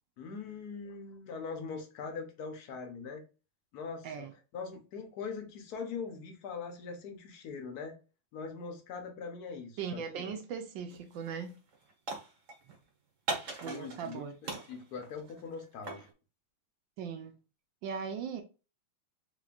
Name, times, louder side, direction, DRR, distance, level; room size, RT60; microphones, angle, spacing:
voice 1, 0.2-3.2 3.7-4.2 4.5-8.0 8.3-10.2 13.6-14.2 14.7-16.1, left 5 dB, 65° left, 1.0 m, -41 dB
voice 2, 9.8-11.5 13.6-14.3 17.0-17.4 17.8-18.4, right 6 dB, 75° right, 1.1 m, -38 dB
sound 1, 10.9-11.2 11.5-12.8 13.3-14.2 14.4-16.1, right 3 dB, 50° right, 1.1 m, -39 dB
4.2 x 3.0 x 2.4 m
omnidirectional pair, 2.4 m